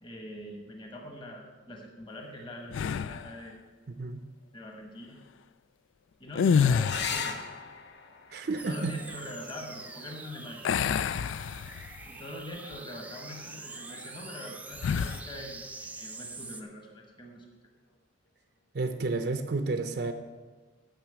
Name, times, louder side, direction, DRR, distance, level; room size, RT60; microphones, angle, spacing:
voice 1, 0.0-3.6 4.5-5.2 6.2-7.5 8.7-10.7 12.0-17.4, left 1 dB, 25° left, 1 dB, 1.2 m, -43 dB
sound 1, 2.7-3.4 6.3-7.4 10.6-12.1 12.6-12.8 14.8-15.3, left 6 dB, 90° left, 0.3 m, -27 dB
voice 2, 3.9-4.2 8.3-9.0 18.7-20.1, right 3 dB, 60° right, 7 dB, 0.6 m, -31 dB
sound 2, 6.8-11.9 13.7-14.4 17.8-17.9 18.3-18.4, left 6 dB, 65° left, 0.8 m, -40 dB
sound 3, 8.6-16.6, right 3 dB, 10° right, 0.5 m, -45 dB
9.0 x 5.9 x 8.1 m, 1.4 s
head